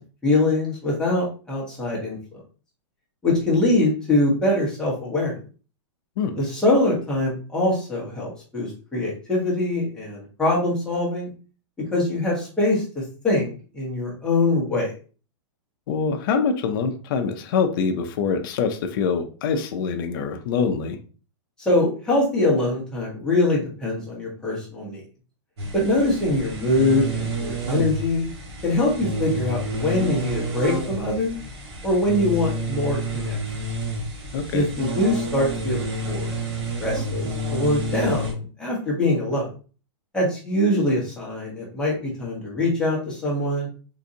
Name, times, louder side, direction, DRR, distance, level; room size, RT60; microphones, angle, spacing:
voice 1, 0.2-2.2 3.2-5.4 6.4-11.3 11.9-14.9 21.6-25.0 25.7-28.3 28.6-31.4 31.8-33.4 34.5-36.3 36.8-39.5 40.1-43.7, left 2 dB, 5° left, -5 dB, 1.1 m, -23 dB
voice 2, 15.9-21.0 34.3-34.7, left 5 dB, 45° left, 5 dB, 0.5 m, -24 dB
sound 1, 25.6-38.3, right 1 dB, 60° right, 1.5 m, -29 dB
3.8 x 2.6 x 2.7 m, 0.37 s
hypercardioid pair, 160°, 16 cm